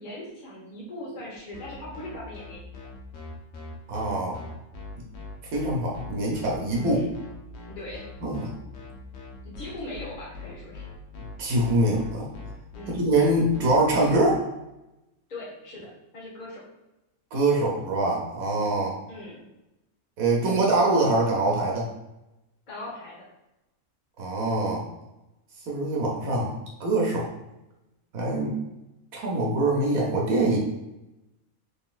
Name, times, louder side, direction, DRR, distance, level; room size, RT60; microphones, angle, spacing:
voice 1, 0.0-2.9 6.8-7.1 7.6-8.0 9.4-10.8 12.7-13.0 15.3-16.6 19.1-19.5 22.7-23.3, left 1 dB, 35° left, -5 dB, 1.1 m, -40 dB
sound 1, 1.5-14.1, left 3 dB, 60° left, 0.9 m, -41 dB
voice 2, 3.9-4.4 5.0-5.1 5.5-7.0 8.2-8.5 11.4-12.3 12.9-14.4 17.3-19.0 20.2-21.9 24.2-24.8 25.7-26.5 26.8-27.3 28.1-28.6 29.1-30.6, right 2 dB, 85° right, -3 dB, 1.3 m, -24 dB
3.8 x 3.6 x 2.4 m, 0.94 s
omnidirectional pair, 1.4 m